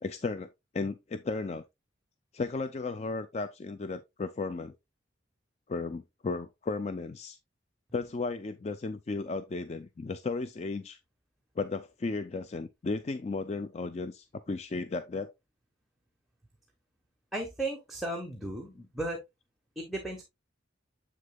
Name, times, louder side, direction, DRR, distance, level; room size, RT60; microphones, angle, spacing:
voice 1, 0.0-1.6 2.3-4.7 5.7-7.4 7.9-11.0 11.6-15.3, left 3 dB, 35° left, 0.4 m, -35 dB
voice 2, 17.3-19.2 19.8-20.2, right 1 dB, ahead, 1.1 m, -35 dB
7.7 x 6.4 x 2.3 m
head